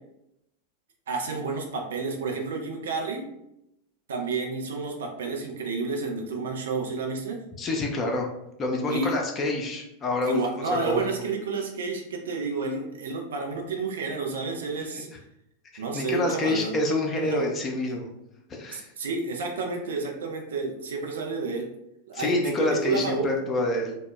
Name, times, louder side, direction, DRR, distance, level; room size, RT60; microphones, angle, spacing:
voice 1, 1.1-3.3 4.1-7.4 8.9-9.2 10.2-15.1 15.8-16.7 17.2-17.5 18.7-21.7 22.1-23.3, right 4 dB, 65° right, 1 dB, 0.4 m, -30 dB
voice 2, 7.6-8.3 8.6-10.4 10.7-11.1 15.7-18.1 18.5-18.9 22.1-24.0, left 2 dB, 25° left, 0 dB, 0.4 m, -27 dB
2.0 x 2.0 x 3.0 m, 0.84 s
figure-of-eight pair, 90°, 0 cm